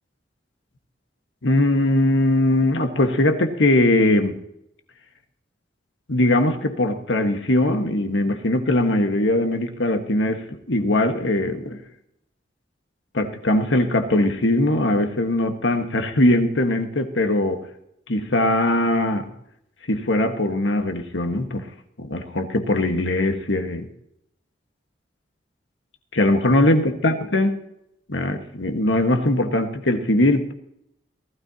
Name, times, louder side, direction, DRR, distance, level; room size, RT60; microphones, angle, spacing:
voice 1, 1.4-4.4 6.1-11.8 13.1-17.6 18.1-19.3 19.9-21.6 22.0-23.9 26.1-27.6 28.1-30.5, left 1 dB, 85° left, 6 dB, 1.6 m, -20 dB
19.0 x 12.5 x 2.9 m, 0.78 s
head